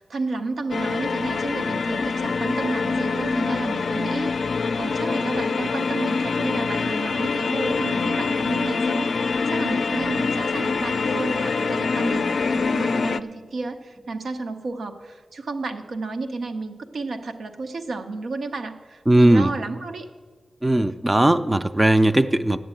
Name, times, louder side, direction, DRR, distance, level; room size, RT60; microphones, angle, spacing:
voice 1, 0.0-20.1, right 3 dB, 85° right, 6 dB, 0.8 m, -31 dB
sound 1, 0.7-13.2, left 4 dB, 75° left, 0.4 m, -25 dB
voice 2, 19.1-19.5 20.6-22.6, right 1 dB, 20° right, 9 dB, 0.4 m, -18 dB
9.0 x 7.6 x 9.0 m, 1.5 s
cardioid pair, 70°, 0 cm